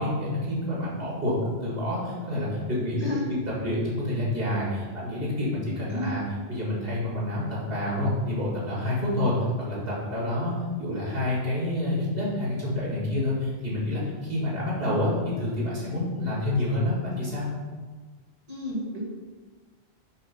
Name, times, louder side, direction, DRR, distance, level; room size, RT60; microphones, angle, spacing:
voice 1, 0.0-3.1 3.6-6.2 6.5-10.5 10.8-17.5, left 1 dB, 60° right, -6 dB, 2.4 m, -28 dB
voice 2, 3.0-3.3 5.9-6.1 18.5-19.0, left 1 dB, 35° right, -6 dB, 1.9 m, -31 dB
8.2 x 2.8 x 5.5 m, 1.4 s
omnidirectional pair, 1.1 m